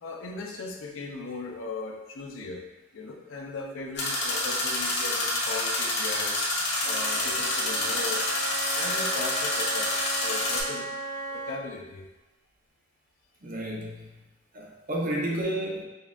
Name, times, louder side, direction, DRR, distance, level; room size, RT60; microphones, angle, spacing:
voice 1, 0.0-2.6 2.9-6.4 6.8-8.4 8.7-9.9 10.2-10.9 11.3-12.1, left 3 dB, 80° left, 1 dB, 0.5 m, -38 dB
sound 1, 4.0-10.6, left 2 dB, 60° left, 0.9 m, -28 dB
Wind instrument woodwind instrument, 6.8-11.6, right 3 dB, ahead, 0.8 m, -36 dB
voice 2, 13.4-14.0 14.5-15.8, right 1 dB, 45° right, -2 dB, 0.7 m, -31 dB
5.2 x 2.4 x 2.3 m, 1.1 s
head